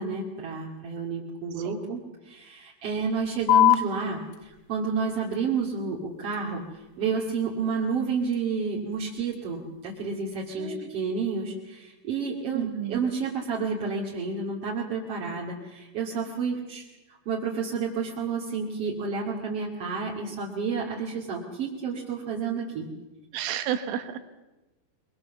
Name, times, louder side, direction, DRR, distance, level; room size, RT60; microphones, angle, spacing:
voice 1, 0.0-2.0 2.2-16.9 17.3-22.9, right 5 dB, 40° right, -4 dB, 2.5 m, -30 dB
sound 1, 3.5-10.5, left 13 dB, 85° left, 3.9 m, -30 dB
voice 2, 10.6-10.9 12.5-13.0 23.3-24.2, right 10 dB, 75° right, 9 dB, 3.9 m, -31 dB
23.5 x 22.5 x 7.2 m, 1.1 s
omnidirectional pair, 5.8 m